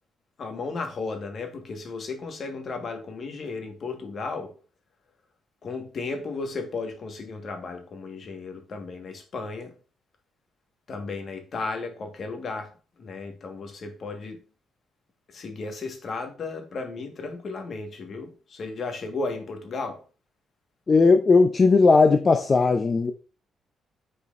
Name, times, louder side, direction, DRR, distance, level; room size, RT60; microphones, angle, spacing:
voice 1, 0.4-4.5 5.6-9.7 10.9-12.7 13.0-14.4 15.3-20.0, left 3 dB, 50° left, 1.5 m, -34 dB
voice 2, 20.9-23.1, left 4 dB, 35° left, 0.6 m, -17 dB
8.5 x 4.5 x 2.6 m
cardioid pair, 90°, 0 cm